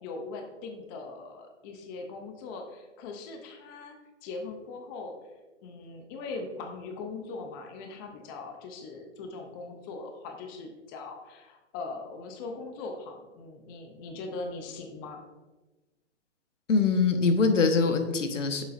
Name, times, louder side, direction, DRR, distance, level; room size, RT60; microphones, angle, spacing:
voice 1, 0.0-5.2 5.6-15.2, left 3 dB, 20° left, 4 dB, 0.5 m, -40 dB
voice 2, 16.7-18.6, left 4 dB, 85° left, 6 dB, 1.2 m, -23 dB
9.2 x 6.9 x 2.5 m, 1.1 s
hypercardioid pair, 145°, 36 cm